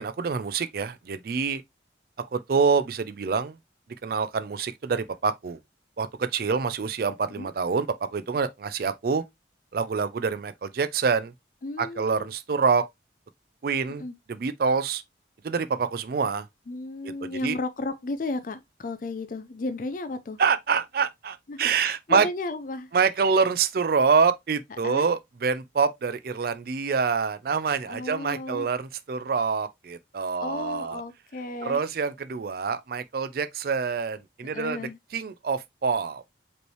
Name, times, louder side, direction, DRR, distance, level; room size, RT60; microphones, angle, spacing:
voice 1, 0.0-1.6 2.3-3.5 4.0-5.6 6.0-7.9 8.1-9.2 9.7-11.3 11.8-12.8 13.6-14.0 14.3-15.0 15.4-16.4 17.2-17.6 20.4-22.3 22.9-31.0 31.6-34.8 35.1-36.2, right 5 dB, 55° right, 0.4 m, -26 dB
voice 2, 11.6-12.3 14.0-14.1 16.7-20.4 21.5-22.9 24.8-25.1 27.8-28.7 30.4-31.8 34.4-35.0, left 2 dB, 45° left, 0.4 m, -34 dB
5.1 x 3.1 x 3.1 m
head